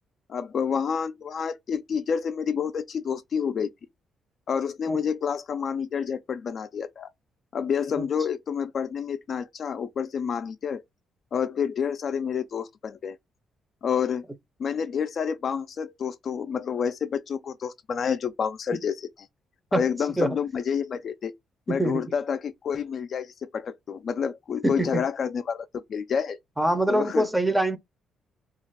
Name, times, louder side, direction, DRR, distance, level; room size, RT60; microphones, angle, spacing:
voice 1, 0.3-3.7 4.5-7.1 7.5-10.8 11.3-13.2 13.8-14.2 14.6-19.1 19.7-21.3 21.7-26.4 26.9-27.3, left 7 dB, 55° left, 0.3 m, -29 dB
voice 2, 21.7-22.0 24.6-25.0 26.6-27.8, right 1 dB, 5° right, 0.6 m, -24 dB
2.4 x 2.3 x 3.2 m
cardioid pair, 90°, 0 cm